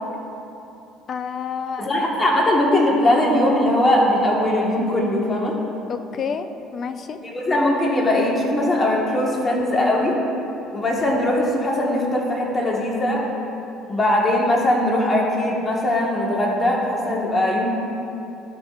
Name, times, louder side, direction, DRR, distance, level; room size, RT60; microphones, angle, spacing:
voice 1, 1.1-1.9 5.9-7.2, left 6 dB, 40° left, 10 dB, 0.4 m, -29 dB
voice 2, 1.8-5.5 7.2-10.2 10.7-13.2 13.9-17.7, left 1 dB, 25° left, -2 dB, 1.5 m, -20 dB
12.0 x 7.0 x 2.5 m, 2.8 s
cardioid pair, 110°, 0 cm